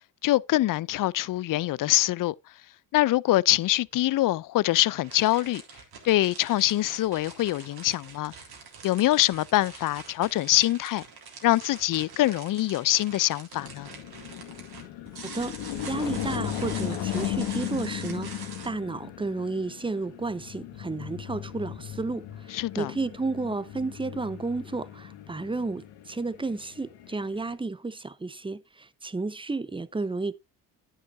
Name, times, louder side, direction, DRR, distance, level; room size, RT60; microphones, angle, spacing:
voice 1, 0.2-2.3 2.9-5.6 6.0-8.3 8.8-11.0 11.4-13.9 22.5-22.9, left 15 dB, 50° left, 0.5 m, -24 dB
sound 1, 3.9-4.0 4.7-18.7, right 5 dB, 60° right, 3.5 m, -45 dB
sound 2, 13.5-27.6, left 12 dB, 85° left, 1.8 m, -36 dB
voice 2, 15.3-30.3, right 3 dB, 10° right, 0.8 m, -32 dB
10.0 x 9.6 x 2.6 m
supercardioid pair, 65°, 43 cm